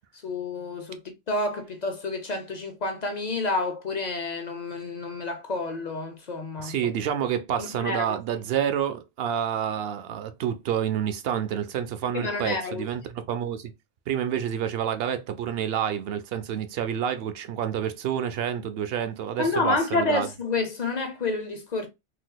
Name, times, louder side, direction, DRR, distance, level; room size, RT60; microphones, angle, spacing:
voice 1, 0.2-1.0 1.3-6.7 7.6-8.0 12.1-12.9 19.4-21.9, left 3 dB, 45° left, 0.7 m, -29 dB
voice 2, 6.6-13.7 14.1-20.3, right 9 dB, 75° right, 0.8 m, -28 dB
3.9 x 2.7 x 2.2 m
omnidirectional pair, 1.0 m